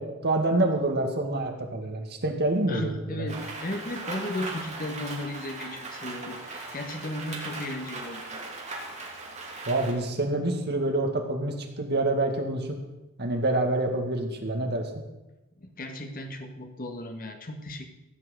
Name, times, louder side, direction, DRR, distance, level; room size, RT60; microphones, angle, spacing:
voice 1, 0.0-3.3 9.7-12.8 13.2-14.9, right 2 dB, 50° right, 4 dB, 2.0 m, -27 dB
voice 2, 2.7-8.4 15.6-17.9, left 1 dB, 45° left, 5 dB, 1.6 m, -35 dB
Rain, 3.3-9.9, right 3 dB, 35° right, 2.6 m, -38 dB
15.5 x 6.0 x 8.4 m, 1.0 s
head